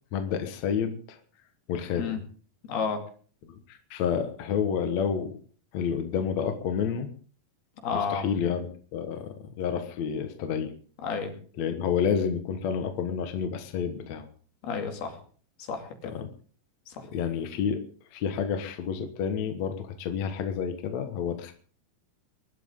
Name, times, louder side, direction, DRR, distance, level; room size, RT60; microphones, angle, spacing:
voice 1, 0.1-1.2 1.7-2.2 3.5-5.4 5.7-7.1 8.1-9.2 9.6-10.7 11.6-14.2 16.0-16.3 17.1-17.8 18.1-21.5, left 7 dB, 55° left, 7 dB, 2.3 m, -29 dB
voice 2, 2.7-3.0 7.8-8.3 11.0-11.3 14.6-15.2 15.7-16.0 16.9-17.1, left 6 dB, 85° left, 4 dB, 4.5 m, -30 dB
23.0 x 12.0 x 3.7 m, 0.43 s
omnidirectional pair, 4.3 m